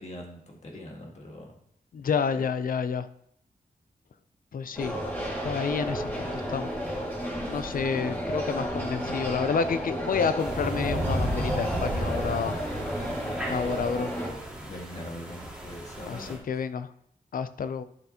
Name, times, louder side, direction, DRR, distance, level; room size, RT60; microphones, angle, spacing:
voice 1, 0.0-1.5 2.3-2.4 12.1-12.5 13.2-13.5 14.6-16.6, left 1 dB, 45° left, -1 dB, 1.8 m, -43 dB
voice 2, 1.9-3.1 4.5-5.0 5.4-6.7 7.5-12.6 13.5-14.2 16.1-16.9 17.3-17.8, left 6 dB, 65° left, 12 dB, 0.5 m, -29 dB
sound 1, 4.7-14.3, equal, 15° left, 2.0 m, -32 dB
sound 2, 10.4-16.4, equal, 5° right, 2.2 m, -34 dB
11.5 x 6.9 x 2.9 m, 0.70 s
wide cardioid pair, 180°, 15 cm